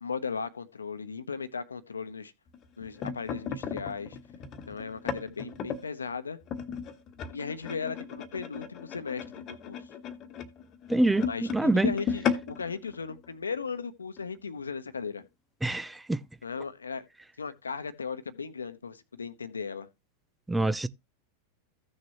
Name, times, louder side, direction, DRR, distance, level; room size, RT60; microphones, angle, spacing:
voice 1, 0.0-2.3 2.8-4.2 4.7-6.4 7.3-9.8 11.2-15.3 16.4-17.1 17.4-19.9, left 5 dB, 75° left, 1.0 m, -37 dB
sound 1, 2.5-5.8 6.5-13.8 14.2-14.4 14.6-14.9 15.7-15.8, left 7 dB, 35° left, 1.3 m, -35 dB
voice 2, 10.9-11.3 11.5-11.9 15.6-16.2 20.5-20.9, right 2 dB, 5° right, 0.4 m, -25 dB
15.0 x 6.5 x 3.0 m
figure-of-eight pair, 90°, 0 cm